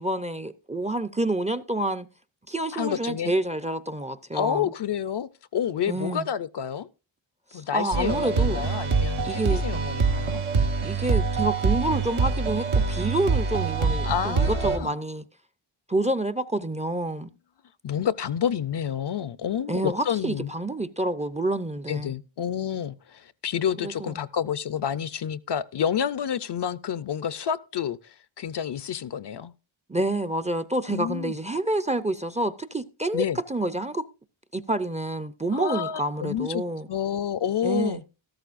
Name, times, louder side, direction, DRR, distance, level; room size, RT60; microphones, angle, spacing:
voice 1, 0.0-2.1 2.5-4.7 5.9-6.3 7.5-8.6 9.2-9.6 10.8-15.2 15.9-17.3 19.7-22.1 23.8-24.2 29.9-34.0 34.5-36.9 37.6-38.0, right 1 dB, 15° right, 0.5 m, -28 dB
voice 2, 2.7-3.3 4.3-6.9 7.5-10.4 14.0-14.9 17.8-20.5 21.9-29.5 30.9-31.4 33.1-33.4 35.5-38.0, left 9 dB, 55° left, 0.6 m, -29 dB
sound 1, 7.9-14.8, right 4 dB, 80° right, 1.4 m, -25 dB
13.5 x 13.0 x 2.5 m
wide cardioid pair, 90°, 49 cm